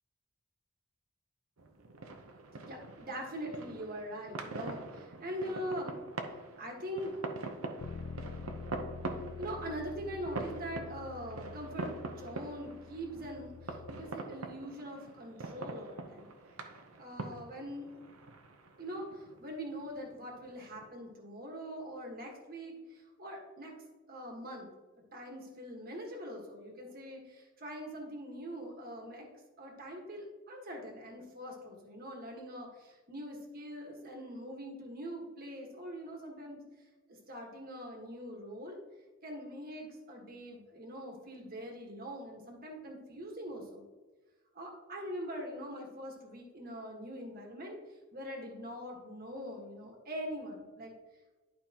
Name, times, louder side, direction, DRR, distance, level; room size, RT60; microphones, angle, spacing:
sound 1, 1.6-20.9, right 2 dB, 80° right, 0.8 m, -44 dB
voice 1, 2.6-5.9 6.6-7.1 9.4-16.3 17.0-17.9 18.8-23.7 24.1-24.7 25.1-29.3 29.6-36.6 37.1-38.8 39.2-43.8 44.5-47.8 48.1-50.9, equal, 40° right, 0 dB, 1.5 m, -43 dB
Bass guitar, 7.8-14.0, left 5 dB, 75° left, 0.5 m, -47 dB
11.5 x 5.2 x 2.9 m, 1.3 s
head